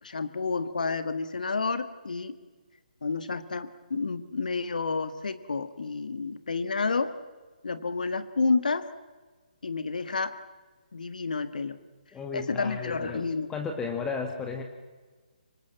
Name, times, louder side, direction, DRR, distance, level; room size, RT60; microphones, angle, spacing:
voice 1, 0.0-2.4 3.0-7.1 7.6-8.9 9.6-10.4 10.9-11.8 12.3-13.5, left 4 dB, 65° left, 12 dB, 1.7 m, -30 dB
voice 2, 12.1-14.6, left 5 dB, 10° left, 4 dB, 1.7 m, -34 dB
25.5 x 25.0 x 7.6 m, 1.3 s
figure-of-eight pair, 140°, 5 cm